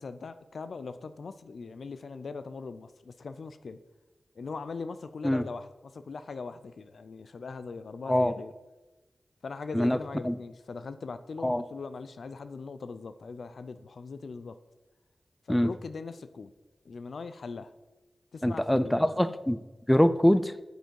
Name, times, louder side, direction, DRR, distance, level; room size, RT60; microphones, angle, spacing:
voice 1, 0.0-3.8 4.4-8.5 9.4-14.6 15.5-16.5 16.8-17.7 18.3-19.2, left 4 dB, 80° left, 11 dB, 0.5 m, -40 dB
voice 2, 18.4-19.6 19.9-20.5, equal, 10° left, 13 dB, 0.5 m, -24 dB
8.2 x 8.1 x 4.6 m, 1.1 s
wide cardioid pair, 65°, 0 cm